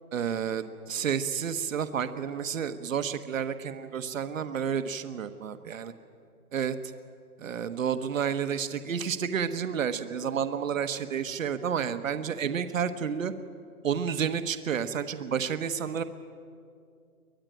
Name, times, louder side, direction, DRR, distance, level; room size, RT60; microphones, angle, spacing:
voice 1, 0.1-5.9 6.5-6.8 7.4-13.3 13.8-16.0, right 7 dB, 60° right, 10 dB, 1.4 m, -30 dB
23.5 x 19.0 x 9.2 m, 2.3 s
hypercardioid pair, 165°, 45 cm